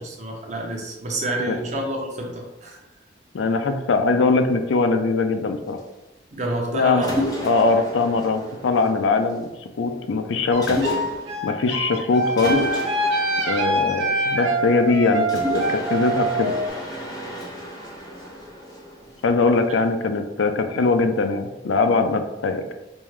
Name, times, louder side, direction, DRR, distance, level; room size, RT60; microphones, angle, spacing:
voice 1, 0.0-2.8 6.3-7.2, right 1 dB, 40° right, 0 dB, 0.8 m, -28 dB
voice 2, 3.3-5.8 6.7-7.0 7.4-9.5 9.8-10.8 11.4-12.6 13.5-15.3 15.5-16.5 19.2-22.7, left 3 dB, 80° left, 7 dB, 0.4 m, -21 dB
Mechanisms, 7.0-9.4 10.6-11.5 12.4-14.7 15.3-19.4, left 1 dB, 20° left, 0.6 m, -31 dB
sound 1, 10.5-16.7, right 1 dB, 65° right, 1.0 m, -24 dB
5.3 x 2.2 x 3.1 m, 0.99 s
head